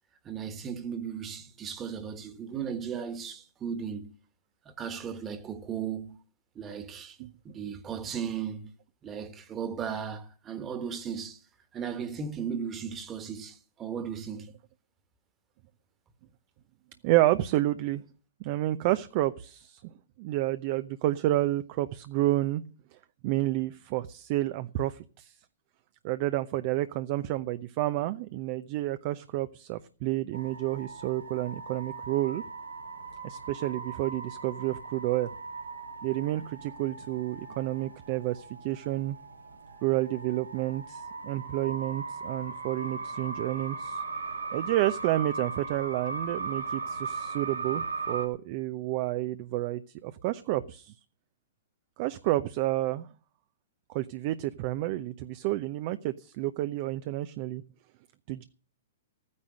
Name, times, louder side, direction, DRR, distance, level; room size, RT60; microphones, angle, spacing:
voice 1, 0.2-4.1 4.6-6.2 6.5-7.2 7.4-8.7 9.0-11.4 11.7-14.5, right 7 dB, 25° right, 1.7 m, -36 dB
voice 2, 17.0-18.0 18.4-19.8 20.2-22.6 23.2-25.3 26.0-32.4 33.2-35.3 36.0-39.2 39.8-44.0 44.5-50.9 52.0-53.1 53.9-57.6 58.3-58.4, right 16 dB, 45° right, 0.8 m, -30 dB
sound 1, 30.3-48.3, right 4 dB, 85° right, 3.2 m, -38 dB
14.0 x 9.8 x 6.4 m
hypercardioid pair, 120°, 0 cm